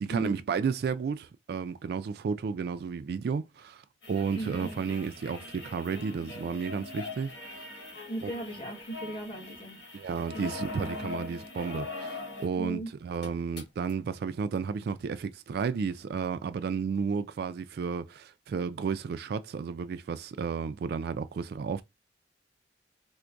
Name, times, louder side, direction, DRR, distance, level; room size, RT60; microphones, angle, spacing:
voice 1, 0.0-7.6 8.2-8.3 9.9-21.8, right 6 dB, 60° right, 0.3 m, -32 dB
sound 1, 4.0-12.6 12.9-13.0 13.1-13.9 14.9-15.0, left 3 dB, 70° left, 1.4 m, -42 dB
voice 2, 4.3-4.7 8.1-9.8 10.3-10.5 12.6-12.9, right 1 dB, 30° left, 1.4 m, -37 dB
4.4 x 2.1 x 2.5 m
head